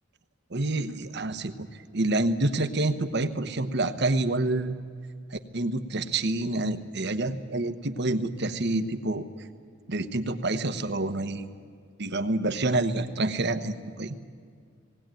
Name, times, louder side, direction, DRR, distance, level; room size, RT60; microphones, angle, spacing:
voice 1, 0.5-4.8 5.3-9.3 9.9-11.5 12.0-14.2, right 2 dB, 60° right, 9 dB, 1.1 m, -28 dB
19.5 x 18.0 x 9.1 m, 2.1 s
head